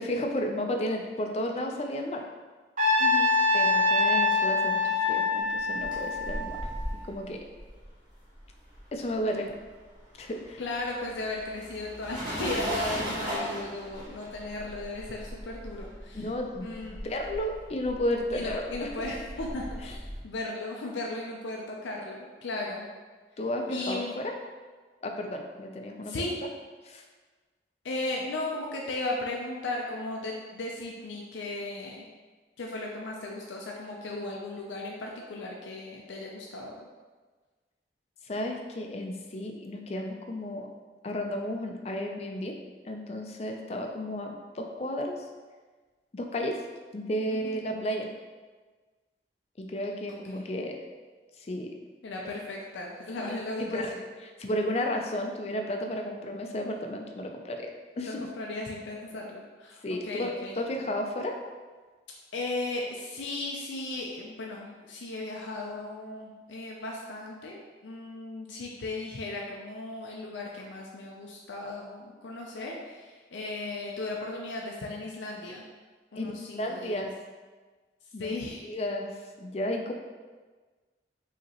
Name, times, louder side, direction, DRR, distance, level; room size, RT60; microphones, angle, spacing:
voice 1, 0.0-2.2 3.5-6.6 7.1-7.4 8.9-9.5 10.2-10.6 16.1-16.8 17.0-18.9 23.4-24.3 25.0-26.1 26.8-27.0 38.2-40.7 41.0-42.6 42.8-45.2 46.1-46.6 46.9-48.1 49.6-50.8 51.4-51.7 53.2-53.9 54.4-57.7 58.0-58.2 59.8-61.4 76.2-77.1 78.1-78.3 78.6-79.9, left 1 dB, 35° left, 3 dB, 0.4 m, -33 dB
Trumpet, 2.8-7.0, left 3 dB, 40° right, 0.6 m, -25 dB
voice 2, 3.0-3.3 10.6-16.3 16.6-17.0 18.3-22.9 23.7-24.1 26.0-26.4 27.8-32.1 32.6-36.8 47.3-47.6 50.1-50.5 52.0-54.0 58.0-60.6 62.3-75.6 76.1-77.0 78.2-78.7, left 2 dB, 90° left, -1 dB, 0.5 m, -36 dB
sound 1, 5.5-9.2 9.5-20.2, equal, 25° right, 1.3 m, -38 dB
5.1 x 2.9 x 2.9 m, 1.4 s
head